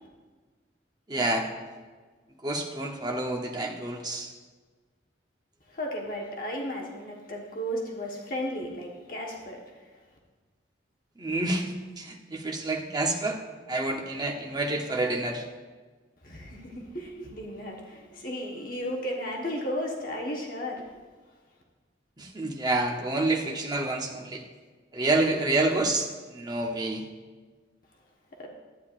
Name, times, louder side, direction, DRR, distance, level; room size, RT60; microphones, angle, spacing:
voice 1, 1.1-1.5 2.4-4.3 11.2-13.4 13.7-15.4 22.2-24.4 24.9-27.0, right 2 dB, 20° right, 2 dB, 0.8 m, -28 dB
voice 2, 5.7-9.6 16.2-20.8 28.4-28.5, equal, 50° left, -1 dB, 1.2 m, -34 dB
11.0 x 9.2 x 2.5 m, 1.4 s
head